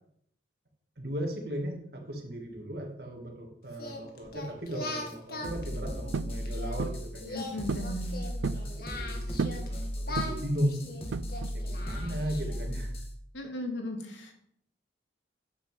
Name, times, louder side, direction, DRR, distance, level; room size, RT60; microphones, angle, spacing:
voice 1, 1.0-7.4 8.2-10.9 11.5-13.0, equal, 55° right, 2 dB, 2.6 m, -36 dB
Singing, 3.7-6.8 7.2-9.7 10.0-12.6, left 2 dB, 55° left, 2.2 m, -40 dB
sound 1, 5.4-13.1, equal, 30° left, 1.7 m, -36 dB
sound 2, 6.1-6.4 6.8-7.1 7.7-7.9 8.2-8.7 9.4-9.7 10.2-10.5 11.1-11.6, right 5 dB, 85° right, 0.4 m, -33 dB
voice 2, 7.3-8.2 13.3-14.3, left 1 dB, 80° left, 3 dB, 2.4 m, -36 dB
9.6 x 6.1 x 7.9 m, 0.70 s
head